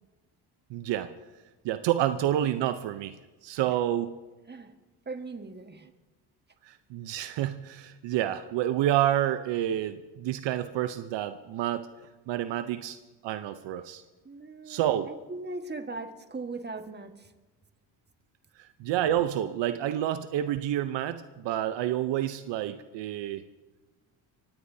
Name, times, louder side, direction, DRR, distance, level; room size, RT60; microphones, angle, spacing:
voice 1, 0.7-1.1 1.6-3.1 3.4-4.1 6.7-11.9 12.3-13.0 13.2-14.0 14.7-15.1 18.6-23.4, right 12 dB, 70° right, 11 dB, 0.8 m, -29 dB
voice 2, 5.0-5.9 14.2-17.3, right 3 dB, 20° right, 6 dB, 1.6 m, -39 dB
22.5 x 17.0 x 2.8 m, 1.2 s
supercardioid pair, 70°, 46 cm